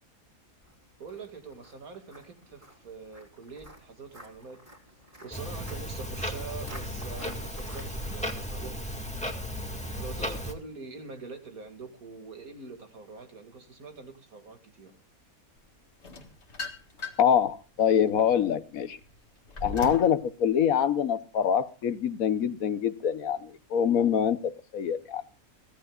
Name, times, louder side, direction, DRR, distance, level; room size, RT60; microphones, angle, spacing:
Walk footsteps, 0.6-9.3, equal, 35° right, 3.8 m, -48 dB
voice 1, 1.0-4.6 5.2-8.7 9.1-9.3 9.9-14.9, right 4 dB, 80° right, 5 dB, 2.8 m, -44 dB
Clock, 5.3-10.5, equal, 5° left, 1.9 m, -35 dB
sound 1, 16.0-17.4 17.9-20.2, left 3 dB, 50° left, 2.0 m, -39 dB
voice 2, 17.2-19.0 19.6-25.2, left 8 dB, 75° left, 13 dB, 1.4 m, -25 dB
23.5 x 16.0 x 2.4 m, 0.31 s
omnidirectional pair, 1.5 m